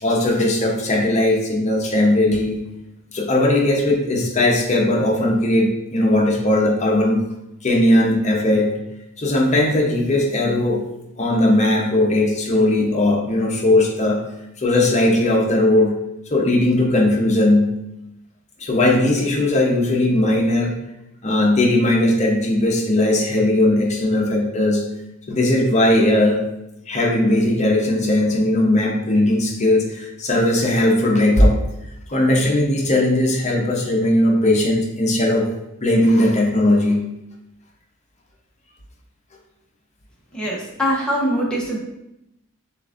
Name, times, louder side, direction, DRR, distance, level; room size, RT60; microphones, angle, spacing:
voice 1, 0.0-2.6 3.1-7.2 7.6-8.7 9.2-10.8 11.2-14.2 14.6-16.0 16.3-17.7 18.6-20.7 21.2-24.8 25.3-26.4 26.9-31.6 32.1-35.5 35.8-37.0, left 1 dB, 35° left, 0 dB, 0.8 m, -18 dB
voice 2, 40.3-41.8, equal, 5° left, -5 dB, 1.0 m, -22 dB
6.8 x 2.5 x 2.5 m, 0.86 s
head